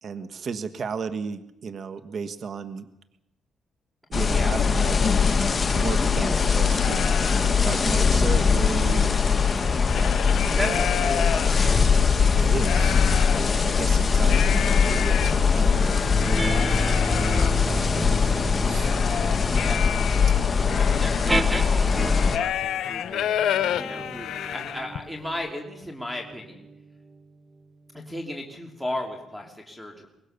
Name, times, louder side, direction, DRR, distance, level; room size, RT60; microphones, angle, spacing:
voice 1, 0.0-2.9 4.1-5.1 5.7-9.8 10.6-10.8 12.3-16.7 17.0-19.1 20.6-21.0, right 5 dB, 55° right, 10 dB, 1.4 m, -35 dB
sound 1, 4.1-22.4, left 5 dB, 35° left, 1.7 m, -21 dB
sound 2, 6.8-7.5 8.0-8.1 8.4-11.9 12.4-13.4 14.2-25.1, left 10 dB, 75° left, 1.0 m, -31 dB
voice 2, 9.8-10.2 10.5-12.1 19.4-19.8 20.7-23.3 23.7-26.7 27.9-30.1, left 1 dB, ahead, 0 dB, 3.2 m, -35 dB
sound 3, 16.1-22.5 23.3-28.2, right 2 dB, 20° right, 1.3 m, -33 dB
24.0 x 20.5 x 6.8 m, 0.87 s
cardioid pair, 90°, 0 cm